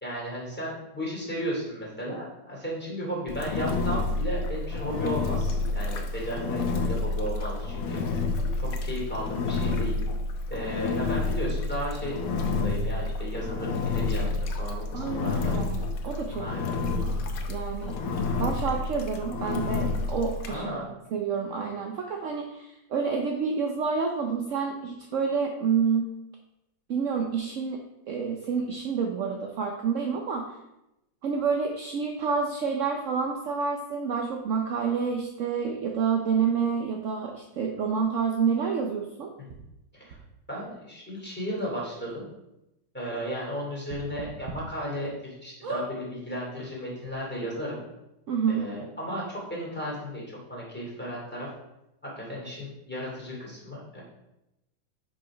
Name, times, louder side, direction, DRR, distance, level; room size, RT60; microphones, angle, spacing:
voice 1, 0.0-8.0 8.6-9.9 10.5-12.1 12.5-15.5 16.4-16.7 20.5-20.9 39.4-39.5 39.9-40.2 40.5-42.3 42.9-47.8 48.5-51.5 52.0-54.0, equal, 5° left, -4 dB, 2.7 m, -35 dB
Engine, 3.3-20.6, left 3 dB, 60° left, 1.0 m, -29 dB
voice 2, 14.9-16.5 16.8-18.0 18.4-20.8 21.1-26.1 26.9-30.5 31.2-39.3 48.3-48.7, right 6 dB, 65° right, 2 dB, 0.7 m, -28 dB
sound 1, 39.5-39.6 40.1-40.2 41.2-41.3 41.6-41.7 42.1-42.2 43.9-44.6 45.0-45.1 45.6-45.9 46.7-46.8 47.0-47.1, right 3 dB, 90° right, 1.9 m, -36 dB
5.9 x 5.1 x 4.9 m, 0.90 s
omnidirectional pair, 2.0 m